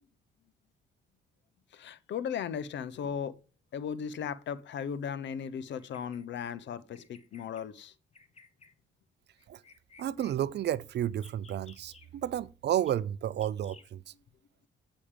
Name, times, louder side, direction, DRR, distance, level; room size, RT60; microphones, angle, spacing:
voice 1, 1.7-3.4 3.7-7.9, left 7 dB, 65° left, 0.8 m, -36 dB
Bird vocalization bird call bird song, 5.7-6.5 6.9-7.6 8.1-8.7 9.4-10.4 11.1-12.1 12.8-12.9 13.4-13.9, left 4 dB, 35° left, 1.4 m, -57 dB
voice 2, 10.0-14.0, right 11 dB, 60° right, 0.6 m, -31 dB
8.7 x 5.2 x 5.0 m
cardioid pair, 90°, 20 cm